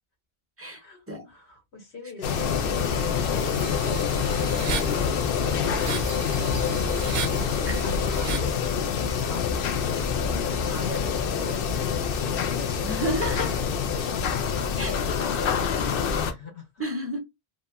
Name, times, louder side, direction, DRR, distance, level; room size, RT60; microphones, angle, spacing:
voice 1, 0.8-8.8 9.2-10.3 10.6-12.0 13.9-16.8, left 3 dB, 85° left, 1.4 m, -41 dB
sound 1, 2.2-16.3, left 6 dB, 65° left, 0.7 m, -26 dB
sound 2, 3.3-8.6, right 5 dB, 70° right, 0.8 m, -36 dB
sound 3, 6.1-7.5 9.1-9.4, right 2 dB, 30° left, 1.3 m, -48 dB
voice 2, 12.8-13.6 14.8-15.0 16.8-17.2, equal, 15° right, 0.7 m, -31 dB
2.9 x 2.3 x 2.2 m
omnidirectional pair, 1.1 m